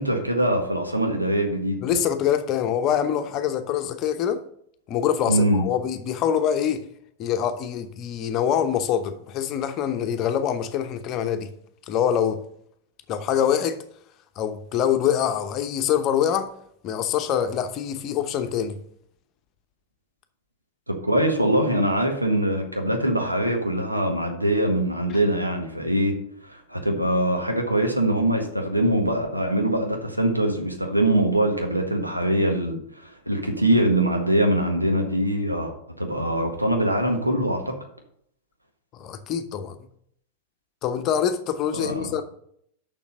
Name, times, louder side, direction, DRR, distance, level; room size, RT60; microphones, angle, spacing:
voice 1, 0.0-1.8 5.3-5.6 20.9-26.2 26.4-37.7 41.7-42.1, right 1 dB, 85° right, 1.6 m, -23 dB
voice 2, 1.8-4.4 4.9-6.8 7.2-11.5 11.9-12.4 13.1-13.8 14.4-16.5 16.8-18.8 38.9-39.8 40.8-42.2, left 9 dB, 35° left, 0.9 m, -24 dB
6.9 x 6.1 x 6.4 m
figure-of-eight pair, 90°, 0 cm